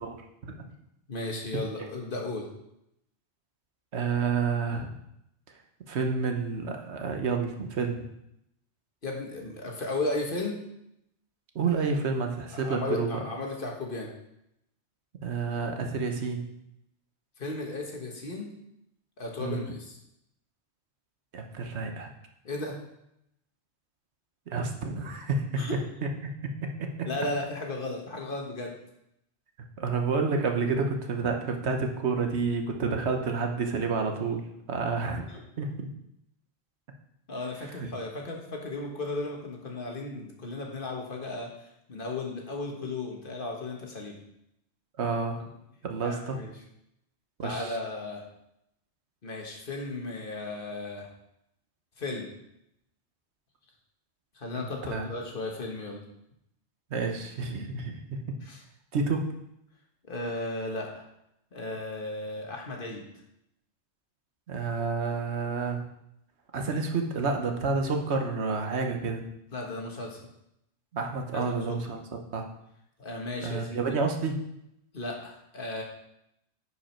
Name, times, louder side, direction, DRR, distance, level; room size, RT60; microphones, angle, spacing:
voice 1, 1.1-2.5 9.0-10.6 12.5-14.1 17.4-18.5 19.2-20.0 22.4-22.8 25.6-25.8 27.0-28.8 35.3-35.4 37.3-44.2 46.0-46.5 47.4-48.3 49.2-51.1 52.0-52.3 54.3-56.0 58.4-58.6 60.0-61.0 61.5-63.1 69.5-70.2 71.3-71.8 73.0-73.8 74.9-75.8, left 2 dB, 50° left, 0 dB, 1.5 m, -35 dB
voice 2, 3.9-4.9 5.9-8.0 11.5-13.2 15.2-16.4 19.4-19.7 21.3-22.1 24.5-25.6 26.0-26.1 27.0-27.1 29.8-35.3 35.6-35.9 37.8-37.9 45.0-45.4 45.8-46.4 47.4-47.8 54.5-55.1 56.9-58.2 58.9-59.3 64.5-65.8 66.5-69.2 70.9-72.4 73.4-74.3, right 4 dB, 80° right, 4 dB, 1.3 m, -29 dB
9.9 x 5.1 x 4.5 m, 0.80 s
omnidirectional pair, 1.1 m